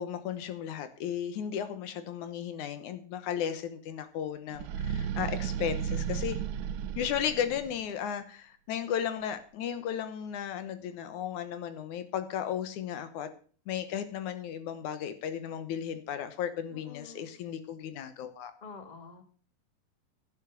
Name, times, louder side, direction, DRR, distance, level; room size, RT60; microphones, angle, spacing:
voice 1, 0.0-6.4 7.0-13.3 13.7-18.5, left 9 dB, 70° left, 11 dB, 2.4 m, -35 dB
sound 1, 4.5-7.8, right 8 dB, 75° right, 2.2 m, -34 dB
voice 2, 16.7-17.3 18.6-19.2, left 5 dB, 55° left, 8 dB, 0.4 m, -47 dB
11.0 x 9.9 x 6.7 m, 0.42 s
omnidirectional pair, 3.8 m